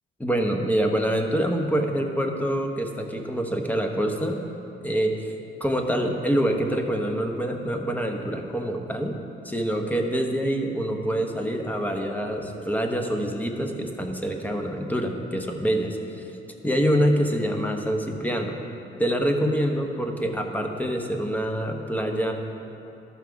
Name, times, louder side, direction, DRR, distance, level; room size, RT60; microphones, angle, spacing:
voice 1, 0.2-4.4 4.8-5.3 5.6-9.2 9.4-16.3 16.6-18.6 19.0-22.3, equal, 10° left, 3 dB, 1.0 m, -26 dB
13.0 x 5.9 x 4.7 m, 2.8 s
cardioid pair, 90°, 20 cm